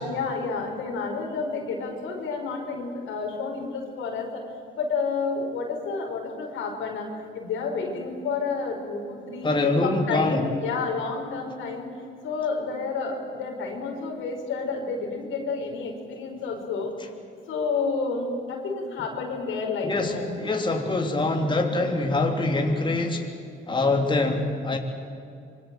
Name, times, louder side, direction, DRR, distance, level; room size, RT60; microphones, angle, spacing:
voice 1, 0.0-4.4 4.7-11.9 12.2-16.9 17.5-20.3, left 4 dB, 85° left, 1 dB, 5.4 m, -30 dB
voice 2, 9.4-10.4 19.8-23.3 23.7-24.8, left 2 dB, 25° left, 2 dB, 3.2 m, -24 dB
25.5 x 24.0 x 7.9 m, 2.5 s
cardioid pair, 90°, 20 cm